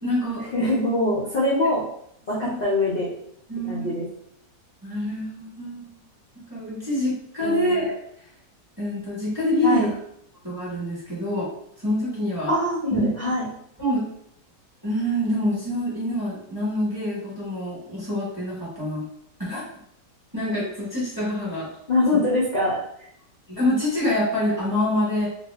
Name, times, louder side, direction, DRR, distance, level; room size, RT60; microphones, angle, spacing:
voice 1, 0.0-0.7 2.4-2.6 3.5-3.9 4.8-6.0 6.3-7.9 8.8-9.9 10.4-11.5 11.8-12.5 12.9-13.1 13.8-14.0 14.8-19.0 19.4-19.6 20.3-21.7 23.5-25.3, left 1 dB, 15° right, -9 dB, 1.3 m, -26 dB
voice 2, 0.5-1.8 2.3-3.1 3.7-4.1 7.4-7.8 9.6-9.9 12.5-13.5 21.9-22.8, left 1 dB, 55° left, -6 dB, 0.6 m, -23 dB
2.6 x 2.2 x 3.4 m, 0.70 s
omnidirectional pair, 1.8 m